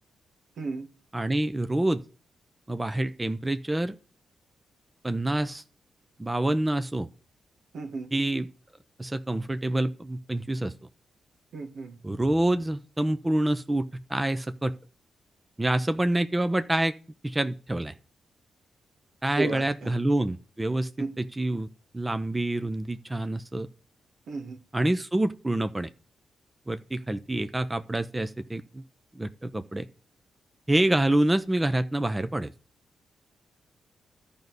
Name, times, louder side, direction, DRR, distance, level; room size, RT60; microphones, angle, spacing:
voice 1, 0.6-0.9 7.7-8.1 11.5-12.0 19.4-19.9 21.0-21.1 24.3-24.6, right 3 dB, 70° right, 1.8 m, -33 dB
voice 2, 1.1-2.0 2.7-4.0 5.0-5.6 6.2-7.1 8.1-8.5 9.0-10.7 12.0-14.7 15.6-16.9 17.2-17.9 19.2-20.9 21.2-21.7 21.9-23.7 24.7-25.9 26.7-28.8 29.1-29.9 30.7-32.5, right 1 dB, 15° right, 0.7 m, -27 dB
12.0 x 5.4 x 7.9 m
cardioid pair, 80°, 0 cm